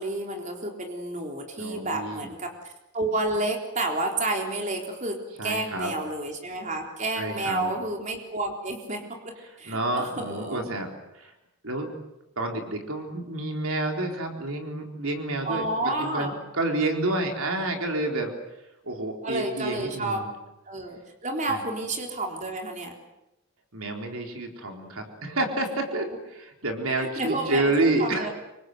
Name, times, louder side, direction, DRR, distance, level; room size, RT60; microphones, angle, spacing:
voice 1, 0.0-10.7 15.4-16.3 19.2-20.2 20.7-22.9 27.0-28.3, right 2 dB, 35° right, 2 dB, 3.8 m, -30 dB
voice 2, 1.6-2.3 5.4-5.9 7.2-7.8 9.6-11.3 11.6-11.9 12.4-18.3 18.8-20.3 21.5-21.6 23.7-28.3, right 2 dB, 75° right, 3 dB, 4.1 m, -29 dB
27.0 x 24.0 x 8.0 m, 0.93 s
head